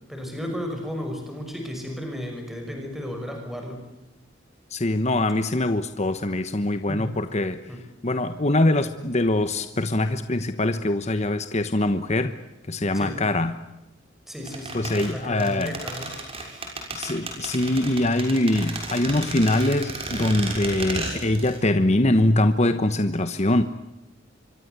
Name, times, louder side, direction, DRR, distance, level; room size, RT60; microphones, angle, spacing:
voice 1, 0.1-3.8 6.9-7.1 7.7-7.8 12.9-13.2 14.3-16.1 16.5-16.7, equal, ahead, 3 dB, 6.0 m, -34 dB
voice 2, 4.7-7.6 8.0-12.3 12.7-13.5 14.7-15.8 16.9-23.6, left 1 dB, 35° left, 10 dB, 1.1 m, -23 dB
sound 1, 14.5-21.6 21.9-22.0, right 2 dB, 30° right, 6.6 m, -33 dB
26.0 x 24.0 x 8.2 m, 0.95 s
head